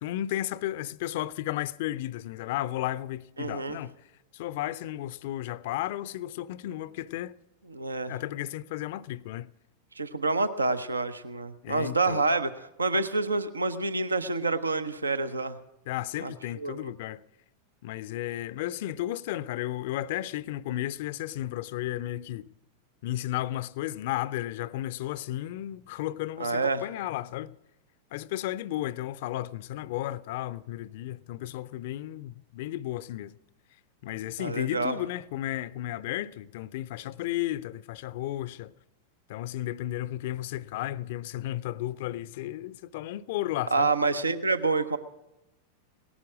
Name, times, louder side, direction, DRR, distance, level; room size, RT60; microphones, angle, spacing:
voice 1, 0.0-4.1 4.3-7.4 8.1-9.5 11.6-12.2 15.9-17.2 17.8-22.4 23.0-27.6 28.1-33.3 34.0-38.7 39.3-43.9, left 14 dB, 50° left, 0.4 m, -33 dB
voice 2, 3.4-3.8 7.7-8.1 10.0-15.6 16.2-16.3 16.6-16.9 26.4-26.8 34.4-34.9 43.7-45.0, right 3 dB, 80° right, 0.7 m, -27 dB
18.0 x 11.5 x 6.2 m
figure-of-eight pair, 90°, 0 cm